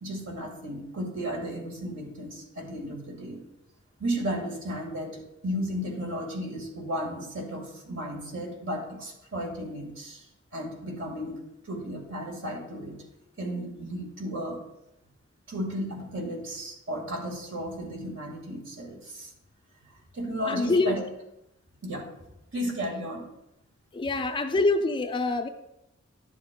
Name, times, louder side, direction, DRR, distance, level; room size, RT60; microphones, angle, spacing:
voice 1, 0.0-3.4 4.0-10.3 10.5-13.0 13.4-14.6 15.5-19.3 20.1-21.0 21.8-22.1 22.5-23.3, equal, 60° right, 1 dB, 1.8 m, -34 dB
voice 2, 20.5-21.0 23.9-25.5, left 3 dB, 20° left, 7 dB, 0.4 m, -25 dB
11.0 x 7.3 x 2.2 m, 0.87 s
head